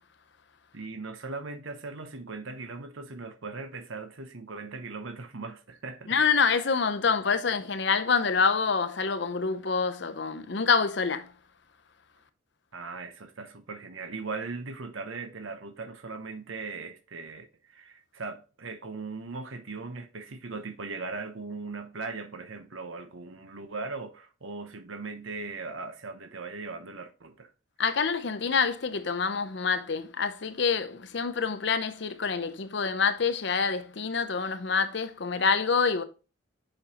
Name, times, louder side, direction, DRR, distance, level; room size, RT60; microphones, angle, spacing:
voice 1, 0.7-6.1 12.7-27.5, right 3 dB, 75° right, 0.9 m, -39 dB
voice 2, 6.1-11.3 27.8-36.0, left 5 dB, 60° left, 0.6 m, -26 dB
7.1 x 5.3 x 2.8 m
head